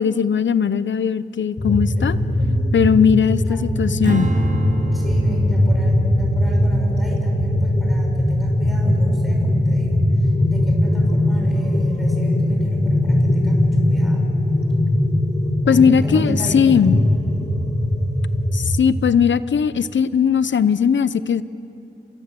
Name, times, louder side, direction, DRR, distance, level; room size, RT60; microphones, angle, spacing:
voice 1, 0.0-2.2 2.7-4.3 15.7-17.0 18.5-21.4, left 7 dB, 70° left, 15 dB, 0.8 m, -18 dB
sound 1, 1.6-18.7, left 1 dB, 35° left, 3.1 m, -20 dB
voice 2, 2.4-2.7 3.5-3.7 4.9-14.3 15.6-16.7, equal, ahead, -1 dB, 6.0 m, -34 dB
Strum, 4.0-10.4, right 2 dB, 40° right, 2.0 m, -29 dB
29.0 x 26.5 x 7.7 m, 2.7 s
wide cardioid pair, 110°, 20 cm